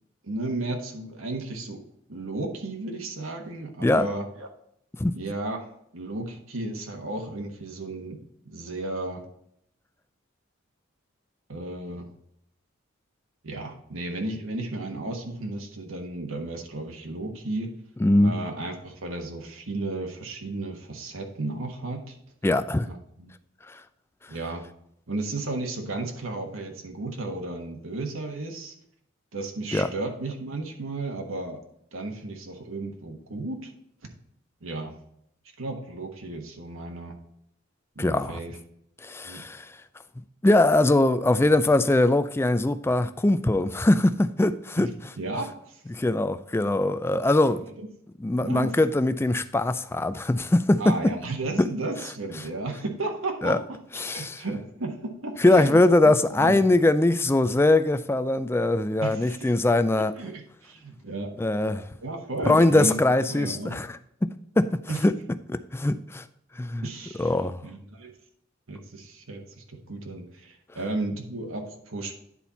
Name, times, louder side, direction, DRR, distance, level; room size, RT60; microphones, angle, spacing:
voice 1, 0.2-1.8 2.1-4.5 5.1-8.2 8.4-9.2 11.5-12.1 13.4-17.7 18.2-22.2 22.9-23.3 24.3-24.6 25.1-28.7 29.3-31.6 31.9-33.7 34.6-34.9 35.6-37.2 37.9-38.6 39.2-39.4 44.8-44.9 45.2-45.8 47.6-47.9 48.4-48.7 50.8-53.8 54.0-56.7 59.0-59.5 60.0-61.3 62.0-63.8 64.9-65.0 66.8-67.3 67.6-68.1 68.7-72.2, right 2 dB, 80° right, 1.4 m, -34 dB
voice 2, 18.0-18.4 22.4-22.9 23.7-23.8 29.7-29.9 38.0-38.4 39.0-39.7 40.4-44.9 45.9-47.6 48.2-51.0 51.6-51.7 53.4-53.6 54.0-54.4 55.4-60.1 61.4-61.9 62.4-64.3 64.6-65.1 65.5-66.2 66.6-66.9 67.2-67.6, left 2 dB, 10° left, 0.3 m, -22 dB
9.8 x 4.3 x 4.1 m
head